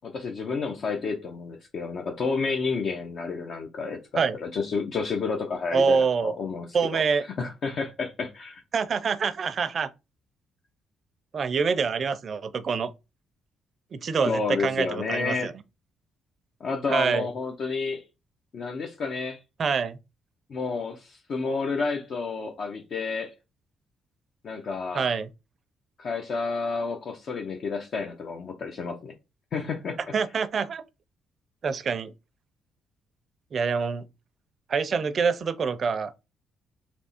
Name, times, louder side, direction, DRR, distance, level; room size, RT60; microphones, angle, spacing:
voice 1, 0.0-4.0 4.4-6.7 6.9-7.0 7.4-8.6 14.2-15.5 16.6-18.0 18.5-19.4 20.5-23.3 24.4-25.1 26.0-29.1 29.5-30.0, left 4 dB, 60° left, 0.7 m, -30 dB
voice 2, 5.7-6.4 6.7-7.3 8.7-9.9 11.3-12.9 13.9-15.5 16.9-17.3 19.6-20.0 24.9-25.3 30.1-30.8 31.6-32.1 33.5-34.0 34.7-36.1, right 5 dB, 50° right, 0.5 m, -25 dB
3.4 x 3.0 x 4.2 m
cardioid pair, 90°, 0 cm